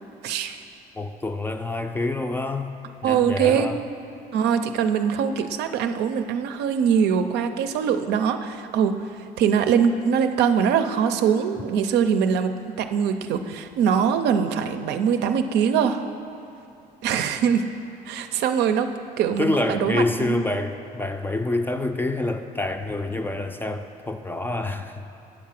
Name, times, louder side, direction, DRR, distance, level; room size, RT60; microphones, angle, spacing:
voice 1, 0.2-0.6 3.0-3.7 4.3-9.1 9.4-12.5 12.8-16.0 17.0-17.7 18.1-18.9 19.2-20.5, right 7 dB, 80° right, 8 dB, 0.5 m, -22 dB
voice 2, 0.9-2.7 3.0-3.8 19.4-25.1, left 2 dB, 10° left, 7 dB, 0.4 m, -27 dB
8.8 x 4.7 x 7.4 m, 2.7 s
cardioid pair, 110°, 17 cm